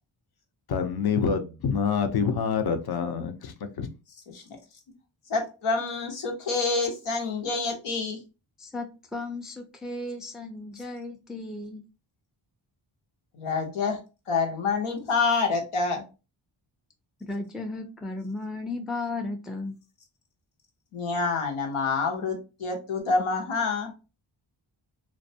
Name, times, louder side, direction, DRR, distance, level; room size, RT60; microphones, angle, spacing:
voice 1, 0.7-3.9, left 6 dB, 50° left, 0.6 m, -26 dB
voice 2, 5.3-8.2 13.3-14.0 14.3-16.0 20.9-23.9, left 4 dB, 85° left, 0.8 m, -27 dB
voice 3, 8.6-11.8 17.2-19.7, left 2 dB, ahead, 0.3 m, -35 dB
2.5 x 2.1 x 2.6 m
cardioid pair, 50°, 50 cm